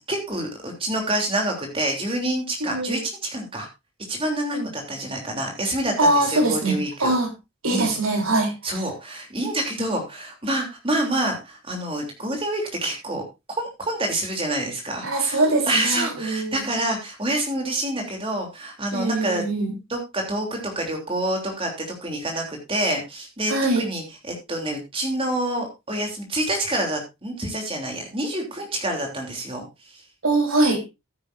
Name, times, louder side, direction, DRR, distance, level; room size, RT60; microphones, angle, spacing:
voice 1, 0.0-3.7 4.1-7.1 7.7-7.9 8.6-19.4 19.9-30.0, right 1 dB, 25° right, 2 dB, 3.2 m, -27 dB
voice 2, 2.6-3.0 4.5-4.7 6.0-6.7 7.0-7.3 7.6-8.5 15.0-16.6 18.9-19.7 23.5-23.8 30.2-30.8, right 2 dB, 75° right, 2 dB, 3.9 m, -22 dB
14.5 x 9.5 x 2.6 m, 0.23 s
head